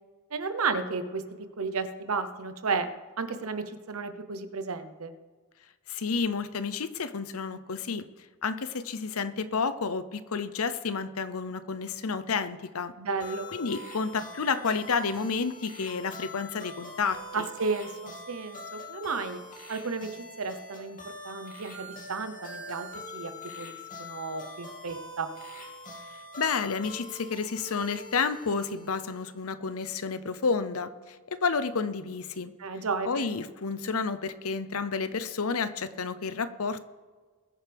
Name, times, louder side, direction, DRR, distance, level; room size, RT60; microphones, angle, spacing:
voice 1, 0.3-1.2 1.6-2.9 3.2-5.1 13.0-13.5 17.3-19.4 19.7-20.1 20.4-22.9 23.1-25.3 32.6-33.3, right 4 dB, 80° right, 10 dB, 1.0 m, -33 dB
voice 2, 5.9-8.0 8.4-12.9 13.5-17.5 26.4-32.5 33.0-36.8, left 5 dB, 80° left, 13 dB, 0.8 m, -30 dB
sound 1, 13.2-29.4, left 1 dB, 40° left, 2.6 m, -44 dB
21.5 x 9.1 x 3.5 m, 1.4 s
head